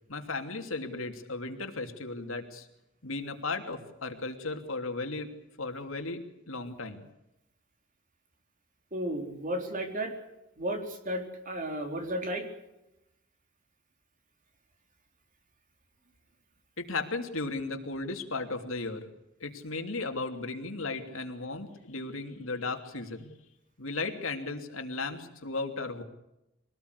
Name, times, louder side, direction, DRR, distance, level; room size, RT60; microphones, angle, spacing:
voice 1, 0.1-2.7 3.0-5.3 5.6-7.0 16.8-19.1 19.4-23.3 23.8-26.0, left 3 dB, 80° left, 5 dB, 2.9 m, -35 dB
voice 2, 8.9-10.1 10.6-12.5, right 1 dB, 40° right, 4 dB, 4.1 m, -33 dB
24.5 x 18.5 x 8.2 m, 0.90 s
head